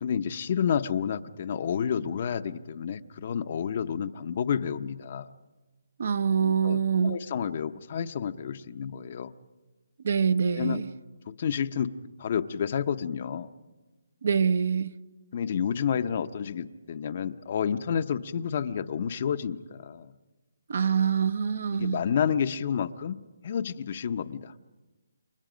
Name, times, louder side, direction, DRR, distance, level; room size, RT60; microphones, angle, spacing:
voice 1, 0.0-5.3 6.4-6.8 7.0-9.3 10.5-10.8 11.3-11.9 12.2-13.5 15.3-20.1 21.7-24.5, left 7 dB, 40° left, 11 dB, 0.7 m, -30 dB
voice 2, 6.0-7.2 10.0-10.9 14.2-14.9 20.7-22.0, right 6 dB, 55° right, 14 dB, 0.8 m, -25 dB
29.0 x 24.0 x 5.1 m, 1.2 s
hypercardioid pair, 170°, 0 cm